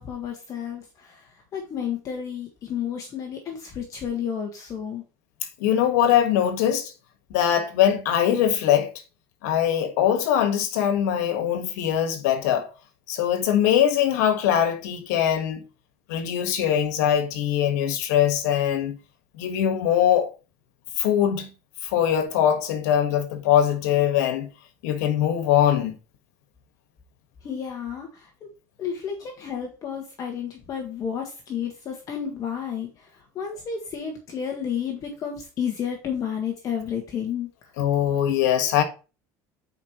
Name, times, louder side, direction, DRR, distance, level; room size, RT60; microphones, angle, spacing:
voice 1, 0.0-5.0 27.4-28.5 28.8-37.7, left 8 dB, 40° left, 1.6 m, -31 dB
voice 2, 5.6-6.9 7.3-8.9 9.4-12.7 13.1-15.6 16.1-19.0 19.4-20.3 21.0-21.5 21.8-24.5 24.8-26.0 37.8-38.8, left 10 dB, 85° left, 1.6 m, -22 dB
9.6 x 5.0 x 3.0 m
supercardioid pair, 125°, 9 cm